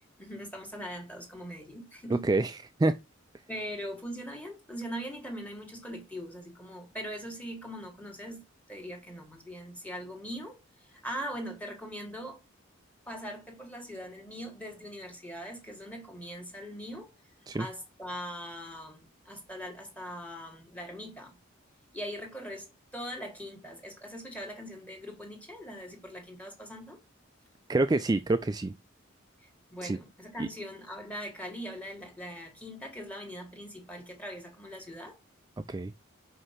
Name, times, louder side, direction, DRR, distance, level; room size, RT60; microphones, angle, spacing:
voice 1, 0.2-2.3 3.5-8.4 8.7-12.4 13.1-17.1 17.5-21.4 21.9-27.0 29.4-35.2, equal, 5° left, 1.5 m, -41 dB
voice 2, 2.2-2.5 2.8-3.0 17.5-17.7 27.7-28.7 29.8-30.0 30.4-30.5 35.7-35.9, right 2 dB, 20° right, 0.3 m, -26 dB
5.4 x 5.0 x 5.7 m
head